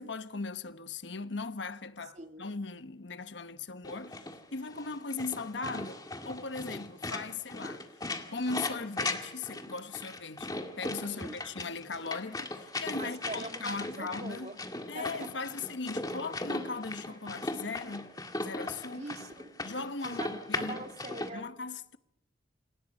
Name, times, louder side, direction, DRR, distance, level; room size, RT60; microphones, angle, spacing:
voice 1, 0.0-7.8 8.3-14.5 14.9-19.1 19.6-20.8 21.3-22.0, left 4 dB, 75° left, 1.1 m, -39 dB
voice 2, 2.2-2.5 11.0-11.3 13.0-14.6 14.9-15.3 18.9-19.6 20.0-21.5, right 2 dB, 40° right, 2.1 m, -43 dB
sound 1, 3.8-21.3, left 2 dB, 20° left, 2.0 m, -38 dB
28.0 x 27.5 x 5.4 m
head